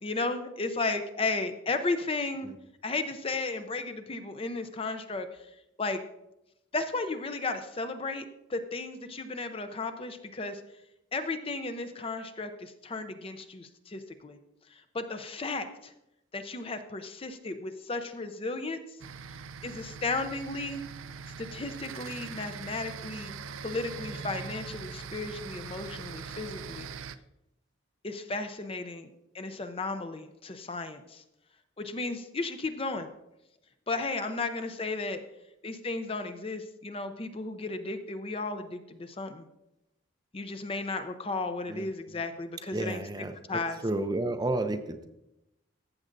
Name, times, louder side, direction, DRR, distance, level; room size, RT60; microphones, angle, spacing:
voice 1, 0.0-2.5 2.8-5.5 5.8-6.0 6.7-10.6 11.1-14.4 14.7-15.9 16.3-18.8 19.6-20.8 21.4-23.3 23.6-26.9 28.0-29.1 29.3-31.2 31.8-33.1 33.9-35.2 35.6-39.5 40.3-43.0 43.5-43.8, left 3 dB, 30° left, 8 dB, 0.6 m, -34 dB
sound 1, 19.0-27.2, right 5 dB, 85° right, 0.4 m, -42 dB
voice 2, 42.7-45.1, right 2 dB, 20° right, 7 dB, 0.5 m, -32 dB
14.5 x 7.6 x 2.6 m, 0.88 s
head